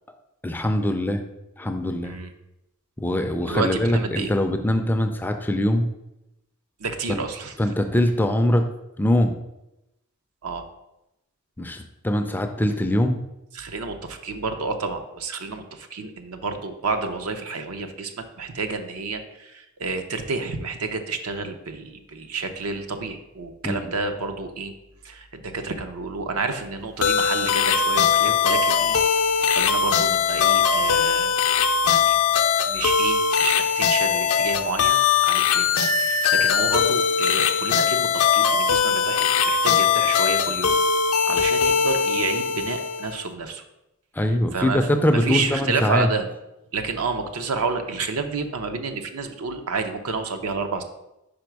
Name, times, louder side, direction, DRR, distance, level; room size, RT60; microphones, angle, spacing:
voice 1, 0.4-1.2 1.6-2.2 3.0-5.9 7.1-7.2 7.6-8.7 9.0-9.3 11.6-13.2 23.6-23.9 44.1-46.1, left 1 dB, 10° left, 6 dB, 0.4 m, -22 dB
voice 2, 3.4-4.3 6.8-7.5 10.4-10.7 13.5-24.7 25.0-29.0 29.2-31.3 31.8-40.8 41.3-43.6 44.5-44.8 45.1-46.3 46.7-50.8, right 4 dB, 75° right, 7 dB, 0.7 m, -30 dB
sound 1, 27.0-43.2, left 6 dB, 70° left, 0.5 m, -21 dB
5.1 x 4.9 x 4.6 m, 0.91 s
head